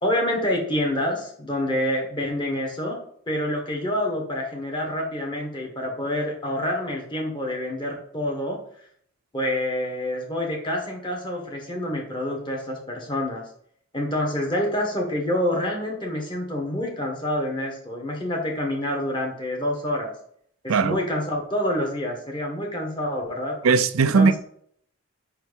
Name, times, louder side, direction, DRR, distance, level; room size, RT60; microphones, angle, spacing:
voice 1, 0.0-3.0 3.3-8.6 9.3-13.4 13.9-20.1 20.6-23.6 24.0-24.4, left 1 dB, 20° left, 1.6 m, -27 dB
voice 2, 23.6-24.4, right 4 dB, 85° right, 0.5 m, -18 dB
5.5 x 4.5 x 5.3 m
head